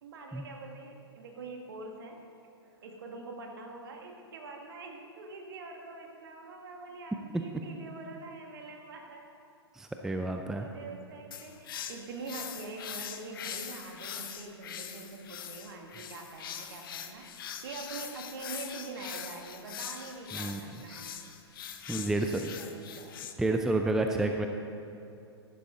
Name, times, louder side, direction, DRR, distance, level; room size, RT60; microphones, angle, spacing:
voice 1, 0.0-2.2 2.6-9.3 10.3-21.2 21.9-23.2 24.0-24.2, right 3 dB, 55° right, 2 dB, 1.8 m, -44 dB
voice 2, 9.7-10.7 20.3-20.8 21.9-22.5 23.4-24.5, right 2 dB, 5° right, 4 dB, 0.5 m, -30 dB
sound 1, 11.3-23.3, left 9 dB, 55° left, 0.8 m, -42 dB
14.5 x 11.5 x 3.8 m, 2.6 s
figure-of-eight pair, 105°, 14 cm